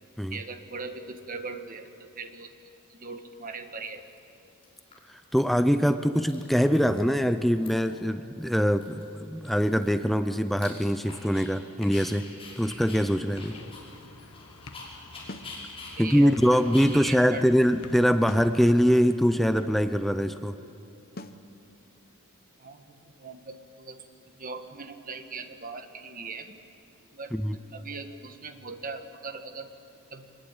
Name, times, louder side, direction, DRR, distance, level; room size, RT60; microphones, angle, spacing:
voice 1, 0.3-2.5 2.9-4.0 16.0-16.6 16.9-17.5 22.6-26.5 27.1-29.7 30.1-30.3, right 4 dB, 40° right, 7 dB, 1.6 m, -40 dB
Dog, 3.1-3.2 3.8-4.3 4.6-5.4 5.7-5.8 6.0-7.1 7.4-8.0 8.4-8.5 8.8-11.5 11.8-18.4, left 3 dB, 25° left, 5.8 m, -46 dB
voice 2, 5.1-12.3 12.6-13.6 16.0-20.6 27.3-27.6, equal, ahead, 9 dB, 0.5 m, -23 dB
sound 1, 12.4-20.0, left 3 dB, 90° left, 1.4 m, -50 dB
sound 2, 15.3-15.6 18.3-18.6 21.2-21.5, left 1 dB, 45° left, 0.9 m, -41 dB
24.0 x 20.5 x 8.9 m, 2.7 s
head